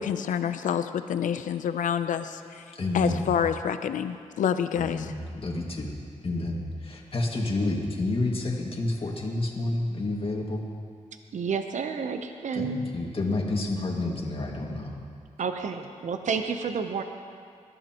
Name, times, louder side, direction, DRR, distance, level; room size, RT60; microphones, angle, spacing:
voice 1, 0.0-2.6 2.9-5.1, left 8 dB, 90° left, 10 dB, 0.5 m, -28 dB
voice 2, 2.8-3.2 4.8-5.9 6.2-10.6 12.5-14.9, left 2 dB, 45° left, -2 dB, 2.1 m, -29 dB
voice 3, 11.3-12.8 15.4-17.0, right 6 dB, 70° right, 6 dB, 0.8 m, -30 dB
21.0 x 12.0 x 3.0 m, 2.2 s
cardioid pair, 60°, 13 cm